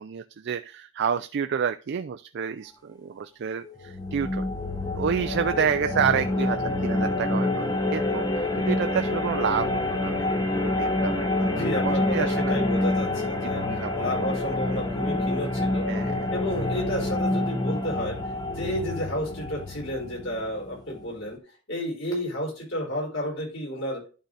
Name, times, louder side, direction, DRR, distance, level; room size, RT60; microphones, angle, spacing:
voice 1, 0.0-4.4 4.9-12.6 13.4-14.1 15.9-16.1, right 7 dB, 55° right, 8 dB, 0.4 m, -29 dB
sound 1, 3.6-21.0, left 2 dB, 20° left, 0.9 m, -27 dB
voice 2, 11.5-13.6 14.0-15.9 16.3-18.2 18.5-21.4 21.7-24.0, equal, 65° left, -3 dB, 4.5 m, -31 dB
11.5 x 3.9 x 3.2 m, 0.35 s
head